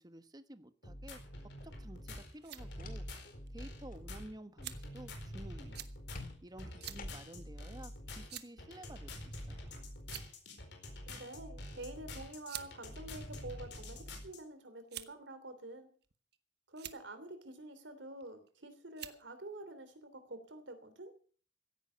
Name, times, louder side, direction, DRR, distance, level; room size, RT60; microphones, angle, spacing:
voice 1, 0.0-3.1 3.5-5.8 6.4-9.7, right 1 dB, 20° right, 11 dB, 1.1 m, -52 dB
sound 1, 0.8-14.4, left 1 dB, 65° left, 4.5 m, -47 dB
sound 2, 2.4-3.4 3.7-4.1 6.1-7.5, left 2 dB, 50° left, 2.2 m, -49 dB
sound 3, 2.4-2.7 3.5-3.6 4.6-5.0 5.7-5.9 6.8-7.0 7.4-7.5 8.3-8.6 9.5-9.7 10.0-10.5 11.6-11.8 12.5-12.7 13.5-14.1 14.9-15.3 16.0-16.4 16.7-17.0 18.2-18.5 19.0-19.2, right 12 dB, 65° right, 1.2 m, -46 dB
voice 2, 11.1-15.9 16.7-21.1, right 2 dB, 85° right, 9 dB, 3.2 m, -48 dB
16.0 x 9.8 x 6.9 m, 0.43 s
head